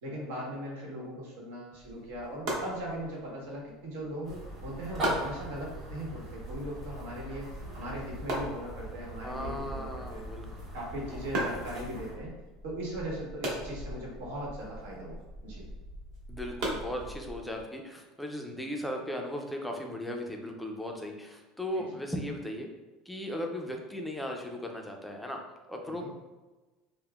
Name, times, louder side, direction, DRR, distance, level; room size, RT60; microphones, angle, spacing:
voice 1, 0.0-4.4 4.6-10.2 10.7-12.3 12.6-15.7 21.7-22.0 25.9-26.1, equal, 85° right, -3 dB, 1.1 m, -39 dB
sound 1, 1.8-17.6, right 1 dB, 50° right, 0.9 m, -40 dB
sound 2, 4.2-12.2, right 1 dB, 30° right, 1.2 m, -41 dB
voice 2, 9.2-10.5 11.1-11.2 16.3-22.7 23.1-25.4 25.7-26.1, left 1 dB, 5° left, 2 dB, 0.4 m, -37 dB
5.3 x 2.0 x 2.3 m, 1.2 s
cardioid pair, 165°, 0 cm